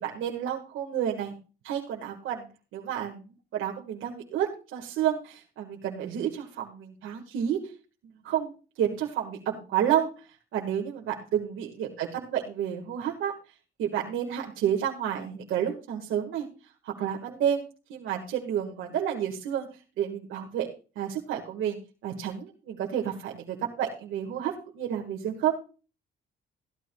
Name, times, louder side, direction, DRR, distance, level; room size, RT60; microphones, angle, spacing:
voice 1, 0.0-1.3 1.6-2.5 2.7-7.6 8.2-8.5 8.8-10.1 10.5-13.3 13.8-16.5 16.8-19.7 20.0-20.7 21.0-25.5, right 9 dB, 85° right, 0 dB, 1.7 m, -30 dB
15.0 x 12.5 x 2.3 m, 0.33 s
cardioid pair, 90°, 20 cm